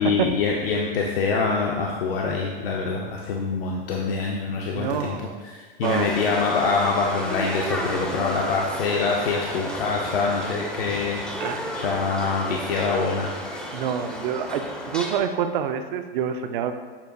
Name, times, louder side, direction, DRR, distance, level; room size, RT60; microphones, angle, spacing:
voice 1, 0.0-5.2 5.5-13.3, left 4 dB, 75° left, -1 dB, 0.6 m, -25 dB
voice 2, 4.7-5.4 5.8-6.1 11.4-11.8 13.7-16.8, right 8 dB, 60° right, 8 dB, 0.4 m, -27 dB
sound 1, 5.8-15.2, equal, 5° left, 0.4 m, -33 dB
6.9 x 2.3 x 2.6 m, 1.4 s
hypercardioid pair, 125°, 29 cm